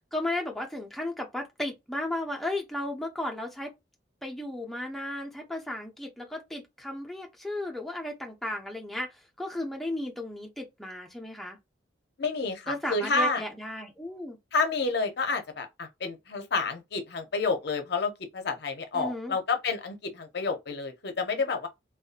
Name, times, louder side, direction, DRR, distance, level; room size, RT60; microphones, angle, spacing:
voice 1, 0.1-3.7 4.2-11.6 12.7-14.4 18.9-19.4, left 1 dB, ahead, 0.5 m, -34 dB
voice 2, 12.2-13.4 14.5-21.7, left 4 dB, 55° left, 0.5 m, -29 dB
2.6 x 2.2 x 2.4 m
head